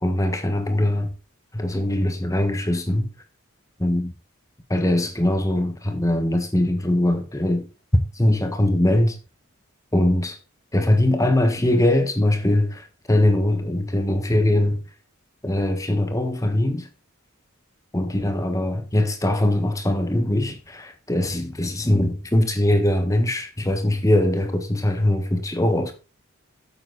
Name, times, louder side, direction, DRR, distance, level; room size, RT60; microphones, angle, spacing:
voice 1, 0.0-1.1 1.5-3.1 3.8-4.1 4.7-7.6 8.1-9.2 9.9-10.4 10.7-14.8 15.4-16.9 17.9-25.9, left 1 dB, 15° left, 1.3 m, -21 dB
8.8 x 7.5 x 4.0 m
head